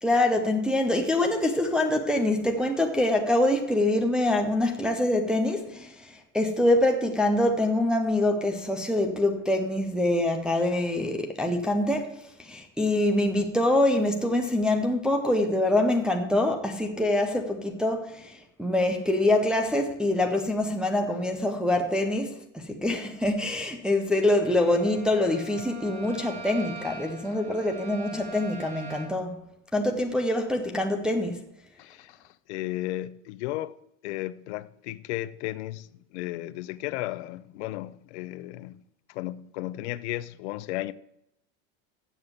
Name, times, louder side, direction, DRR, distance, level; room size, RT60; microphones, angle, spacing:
voice 1, 0.0-29.4 29.7-31.4, left 1 dB, ahead, 0.4 m, -25 dB
Bowed string instrument, 24.3-29.3, right 2 dB, 15° right, 2.1 m, -43 dB
voice 2, 31.8-32.2 32.5-33.8 34.0-38.8 39.1-40.9, left 16 dB, 65° left, 0.6 m, -34 dB
7.9 x 7.1 x 7.1 m
supercardioid pair, 155°, 37 cm